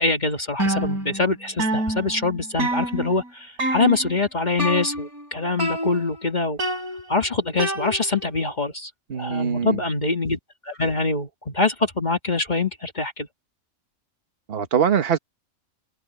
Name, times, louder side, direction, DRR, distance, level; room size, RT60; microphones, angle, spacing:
voice 1, 0.0-6.6 7.1-8.9 9.2-10.4 10.7-13.3, left 3 dB, 30° left, 1.9 m, -24 dB
sound 1, 0.6-1.3 1.6-3.3 3.6-4.2 4.6-5.3 5.6-6.2 6.6-8.3, right 1 dB, 85° right, 6.8 m, -27 dB
voice 2, 9.1-9.8 14.5-15.2, right 8 dB, 45° right, 1.4 m, -22 dB
omnidirectional pair, 1.5 m